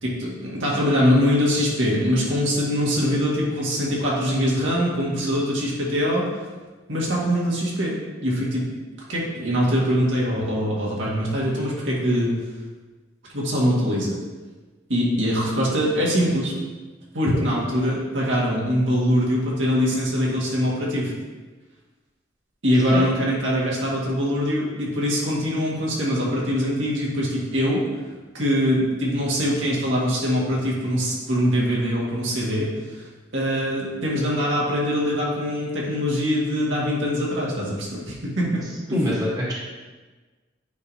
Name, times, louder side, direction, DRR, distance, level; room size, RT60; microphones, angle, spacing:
voice 1, 0.0-6.2 6.9-8.0 8.2-8.7 9.1-12.4 13.3-14.2 14.9-16.6 17.1-21.1 22.6-27.8 28.3-33.1 33.3-38.6 38.9-39.0, equal, 90° right, -5 dB, 1.9 m, -23 dB
voice 2, 38.9-39.5, left 1 dB, 20° right, -5 dB, 1.2 m, -23 dB
9.2 x 4.8 x 2.8 m, 1.3 s
head